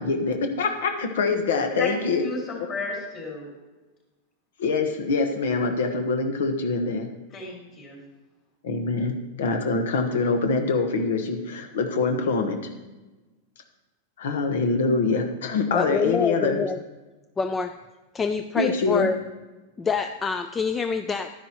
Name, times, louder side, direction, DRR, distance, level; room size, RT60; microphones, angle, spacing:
voice 1, 0.0-2.3 4.6-7.1 8.6-12.6 14.2-16.6 18.6-19.1, left 4 dB, 85° left, 5 dB, 1.1 m, -24 dB
voice 2, 2.2-3.5 7.3-8.0, left 3 dB, 30° left, -2 dB, 2.9 m, -33 dB
voice 3, 15.7-16.8 17.4-17.7 18.1-19.2 19.8-21.3, left 5 dB, 15° left, 7 dB, 0.3 m, -26 dB
11.5 x 10.0 x 3.0 m, 1.1 s
supercardioid pair, 160°, 0 cm